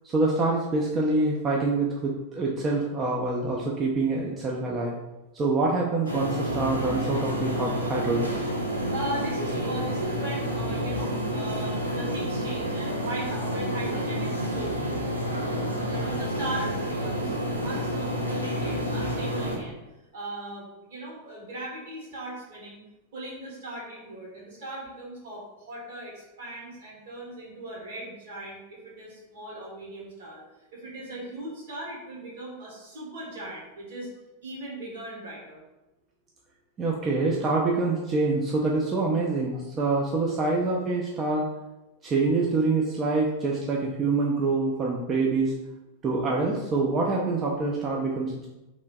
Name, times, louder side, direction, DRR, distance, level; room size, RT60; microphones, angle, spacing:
voice 1, 0.0-4.9 5.3-8.3 36.8-41.5 42.0-45.5 46.0-48.5, right 3 dB, 25° right, -3 dB, 0.3 m, -26 dB
sound 1, 6.0-19.6, equal, 85° right, 0.4 m, -29 dB
voice 2, 7.6-8.0 8.9-14.8 15.9-17.3 17.6-19.8 20.1-22.8 23.1-30.4 30.7-34.1 34.4-35.6, right 1 dB, 60° right, -5 dB, 1.2 m, -38 dB
3.0 x 2.5 x 2.3 m, 1.0 s
figure-of-eight pair, 90°, 0 cm